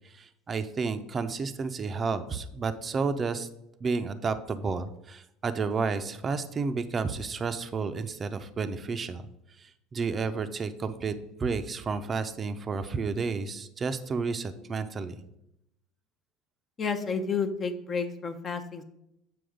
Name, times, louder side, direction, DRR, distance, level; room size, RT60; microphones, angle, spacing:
voice 1, 0.0-3.5 3.8-9.3 9.6-11.1 11.4-15.2, right 4 dB, 30° right, 9 dB, 0.5 m, -31 dB
voice 2, 16.8-18.8, left 5 dB, 30° left, 6 dB, 0.7 m, -31 dB
7.7 x 4.6 x 5.0 m, 0.82 s
supercardioid pair, 105°, 0 cm